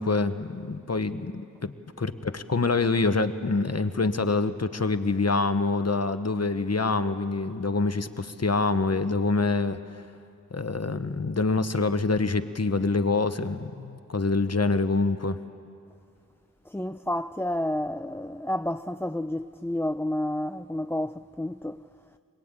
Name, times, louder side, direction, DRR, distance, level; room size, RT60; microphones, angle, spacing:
voice 1, 0.0-9.8 10.5-15.4, left 3 dB, 50° left, 1.1 m, -26 dB
voice 2, 16.7-21.8, left 1 dB, 5° left, 0.5 m, -30 dB
22.0 x 21.0 x 9.0 m
wide cardioid pair, 40°, 34 cm